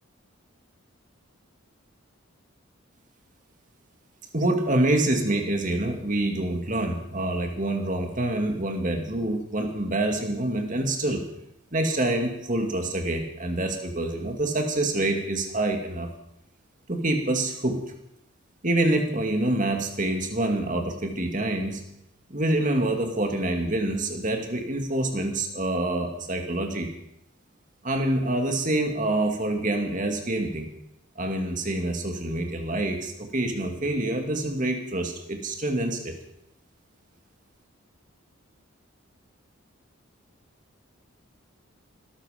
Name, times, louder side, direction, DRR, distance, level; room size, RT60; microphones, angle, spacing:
voice 1, 4.3-11.2 11.7-16.1 16.9-17.8 18.6-21.8 22.3-26.9 27.8-30.7 31.2-36.2, right 1 dB, 35° right, 4 dB, 2.2 m, -26 dB
20.5 x 13.5 x 5.1 m, 0.81 s
head